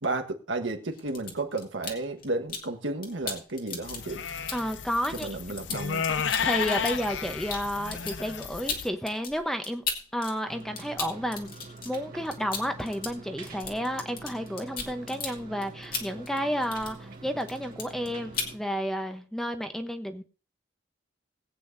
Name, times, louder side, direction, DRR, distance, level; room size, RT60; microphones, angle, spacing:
voice 1, 0.0-4.2 5.1-6.1, right 2 dB, 90° right, 5 dB, 1.5 m, -32 dB
sound 1, 0.9-2.7 3.0-10.3 10.6-17.2 17.4-18.1 18.3-18.5, left 5 dB, 50° left, 2.0 m, -37 dB
sound 2, 3.8-8.9, left 7 dB, 70° left, 0.6 m, -32 dB
voice 2, 4.5-5.3 6.4-9.8 10.1-20.2, equal, ahead, 7 dB, 0.9 m, -31 dB
sound 3, 10.5-18.6, right 3 dB, 50° right, 1.6 m, -46 dB
20.5 x 8.5 x 2.7 m, 0.34 s
head